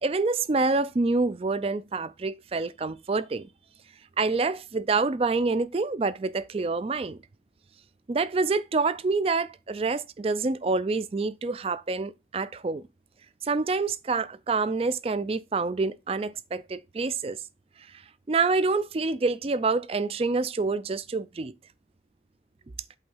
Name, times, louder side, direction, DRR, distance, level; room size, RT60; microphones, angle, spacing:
voice 1, 0.0-3.5 4.2-7.2 8.1-12.8 13.4-17.4 18.3-21.5, right 3 dB, 30° right, 0.4 m, -27 dB
8.2 x 3.4 x 5.5 m
head